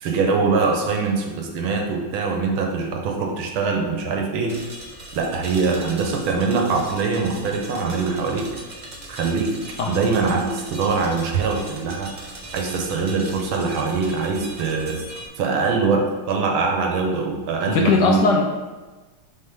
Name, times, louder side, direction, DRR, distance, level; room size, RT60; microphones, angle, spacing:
voice 1, 0.0-4.6 5.1-8.5 9.1-9.6 9.9-12.1 12.5-15.0 15.4-18.2, right 4 dB, 80° right, 2 dB, 1.7 m, -23 dB
sound 1, 4.5-15.3, right 1 dB, 35° right, 0.7 m, -39 dB
voice 2, 17.7-18.4, left 4 dB, 70° left, 2 dB, 1.1 m, -18 dB
6.1 x 5.6 x 3.5 m, 1.2 s
omnidirectional pair, 2.3 m